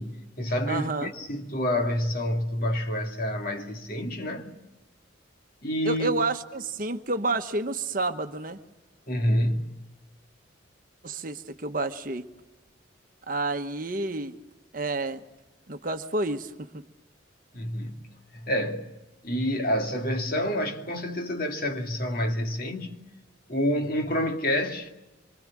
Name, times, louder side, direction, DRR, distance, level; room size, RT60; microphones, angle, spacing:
voice 1, 0.0-4.5 5.6-6.1 9.1-9.9 17.5-18.9 19.2-22.9 23.5-24.9, equal, 45° left, 2.5 m, -28 dB
voice 2, 0.7-1.1 5.8-8.6 11.0-12.3 13.3-14.3 14.7-15.2 15.7-16.8, right 2 dB, 45° right, 1.2 m, -29 dB
26.0 x 24.5 x 7.4 m
head